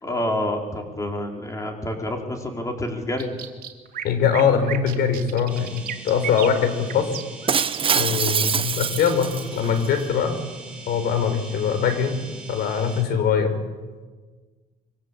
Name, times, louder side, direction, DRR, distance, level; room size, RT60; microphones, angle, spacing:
voice 1, 0.0-3.3, left 1 dB, 20° left, 2 dB, 4.8 m, -28 dB
sound 1, 3.2-8.1, right 10 dB, 60° right, 3.1 m, -35 dB
voice 2, 4.0-7.1 7.9-10.4 10.9-12.2 12.5-13.6, left 7 dB, 70° left, 9 dB, 4.7 m, -22 dB
sound 2, 5.5-13.0, right 3 dB, 5° right, 7.9 m, -42 dB
Shatter, 7.5-9.9, right 6 dB, 30° right, 0.9 m, -24 dB
25.5 x 24.0 x 8.6 m, 1.4 s
cardioid pair, 110°, 17 cm